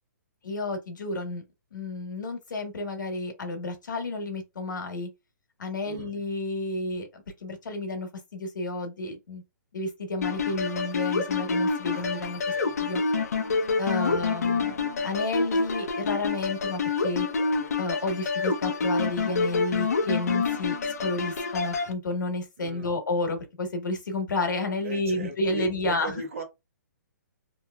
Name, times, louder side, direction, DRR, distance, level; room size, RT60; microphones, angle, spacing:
voice 1, 0.4-1.4 1.7-5.1 5.6-9.4 9.7-12.4 12.7-13.0 13.8-17.3 17.8-20.8 21.0-26.2, left 2 dB, 85° left, 1.3 m, -31 dB
sound 1, 10.2-21.9, left 4 dB, 55° left, 0.7 m, -27 dB
voice 2, 22.6-22.9 24.8-26.4, right 2 dB, 45° right, 1.1 m, -39 dB
3.0 x 2.9 x 2.3 m
hypercardioid pair, 180°, 10 cm